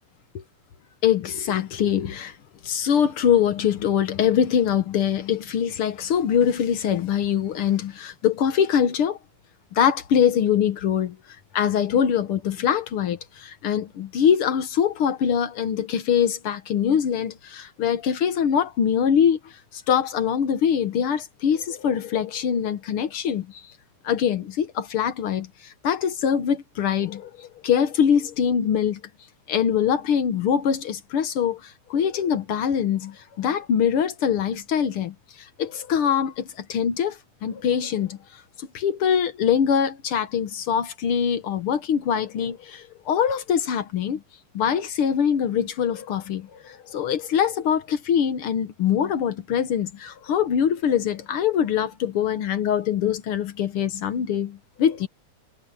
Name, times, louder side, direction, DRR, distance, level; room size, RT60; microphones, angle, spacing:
voice 1, 1.0-2.3 2.6-9.2 9.7-11.2 11.5-19.4 19.7-23.6 24.0-29.0 29.5-35.1 35.6-38.2 38.6-44.2 44.5-55.1, left 8 dB, 60° left, 1.6 m, -23 dB
omnidirectional pair, 3.5 m